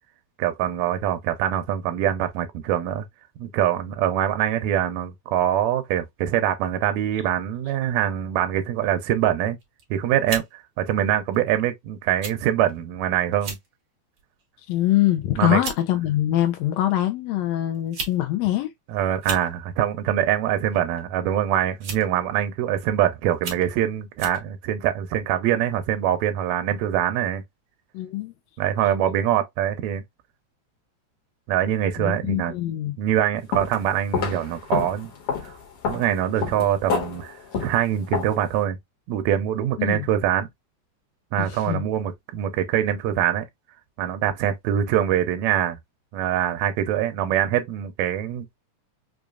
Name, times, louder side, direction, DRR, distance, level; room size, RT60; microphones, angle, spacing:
voice 1, 0.4-3.1 3.4-9.6 9.9-13.6 15.4-15.6 18.9-27.4 28.6-30.0 31.5-32.6 33.0-35.1 35.4-35.6 35.9-38.8 39.1-40.5 41.3-43.5 44.0-45.8 46.1-48.5, right 11 dB, 80° right, 1.8 m, -24 dB
sound 1, 9.6-9.8 10.3-10.5 11.3-11.5 12.2-12.4 12.7-12.8 13.3-13.7 14.2-14.4 15.2-15.3 15.6-15.8 16.9-17.0 17.7-18.2 18.4-18.5 19.1-19.5 20.7-21.0 21.8-22.2 22.7-22.8 23.3-23.7 24.2-24.4, right 4 dB, 55° right, 1.3 m, -34 dB
voice 2, 14.7-18.7 27.9-28.3 32.0-32.9 39.8-40.0 41.4-41.8, left 13 dB, 75° left, 1.7 m, -23 dB
sound 2, 33.5-33.8 34.1-38.5, left 6 dB, 55° left, 2.0 m, -29 dB
5.1 x 2.3 x 2.3 m
omnidirectional pair, 3.3 m